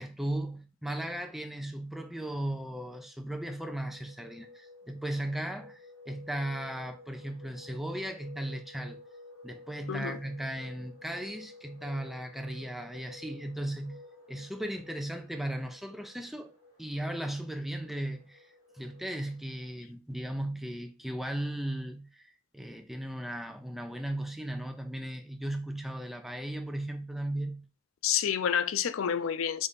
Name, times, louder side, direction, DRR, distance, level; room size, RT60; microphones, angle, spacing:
voice 1, 0.0-9.0 9.4-14.0 14.3-16.5 16.8-18.5 18.7-27.7, right 1 dB, ahead, 0.5 m, -36 dB
sound 1, 2.1-19.8, left 2 dB, 35° left, 2.2 m, -53 dB
voice 2, 28.0-29.7, left 8 dB, 90° left, 0.4 m, -29 dB
3.5 x 3.3 x 3.9 m
head